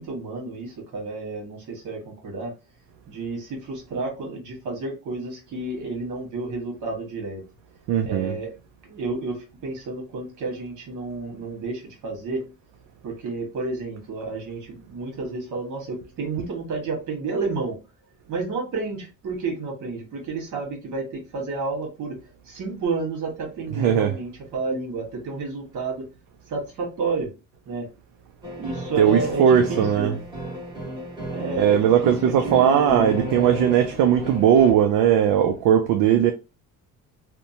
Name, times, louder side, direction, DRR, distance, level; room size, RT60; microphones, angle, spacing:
voice 1, 0.0-2.5 3.1-7.4 8.0-8.5 8.8-12.5 13.0-17.8 18.3-22.2 22.4-26.1 26.5-27.3 27.6-27.9 28.6-30.2 31.3-33.3, right 3 dB, 65° right, 1.4 m, -31 dB
voice 2, 7.9-8.3 23.8-24.1 29.0-30.1 31.6-36.3, right 9 dB, 80° right, 0.5 m, -19 dB
sound 1, 28.4-34.7, equal, 15° right, 1.1 m, -33 dB
2.8 x 2.1 x 2.7 m
cardioid pair, 145°, 33 cm